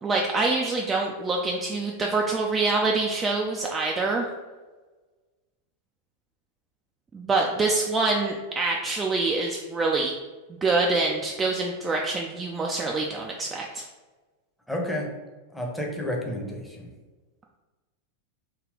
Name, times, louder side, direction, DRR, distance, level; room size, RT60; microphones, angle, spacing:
voice 1, 0.0-4.3 7.1-10.1 10.5-13.8, right 3 dB, 20° right, -1 dB, 0.3 m, -25 dB
voice 2, 14.7-15.1 15.5-16.9, left 1 dB, ahead, -1 dB, 0.7 m, -30 dB
3.4 x 2.3 x 3.7 m, 1.3 s
figure-of-eight pair, 90°, 0 cm